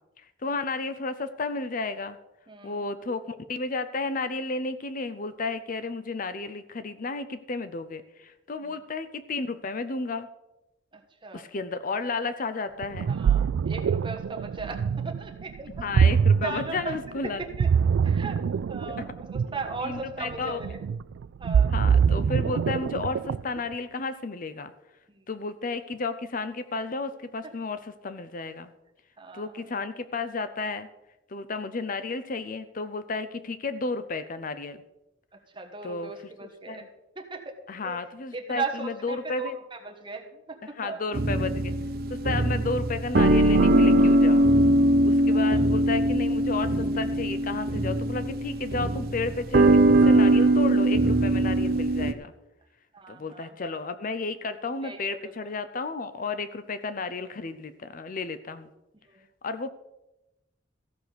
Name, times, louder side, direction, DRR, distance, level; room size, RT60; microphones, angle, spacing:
voice 1, 0.4-2.2 2.6-10.3 11.3-13.1 15.8-17.4 19.8-20.6 21.7-24.7 25.3-28.7 29.3-30.9 31.3-34.8 35.8-36.1 36.4-36.8 37.7-39.6 40.6-41.7 42.1-44.4 45.0-52.3 53.1-58.7 59.4-59.7, left 3 dB, 45° left, 12 dB, 0.6 m, -32 dB
voice 2, 2.5-2.9 8.6-8.7 11.2-11.4 13.1-16.2 16.4-17.0 17.4-17.7 18.0-18.4 18.7-20.8 21.4-21.7 29.2-29.7 35.5-36.8 37.1-37.5 37.8-38.0 38.3-41.0 42.2-42.4 45.2-45.6 52.9-53.5 54.8-55.5 59.1-59.2, right 3 dB, 25° right, 3 dB, 1.5 m, -37 dB
Ocean, 12.8-23.6, right 6 dB, 85° right, 0.3 m, -24 dB
sound 1, 41.1-52.1, right 1 dB, 55° right, 0.7 m, -21 dB
14.5 x 6.1 x 6.9 m, 0.94 s
head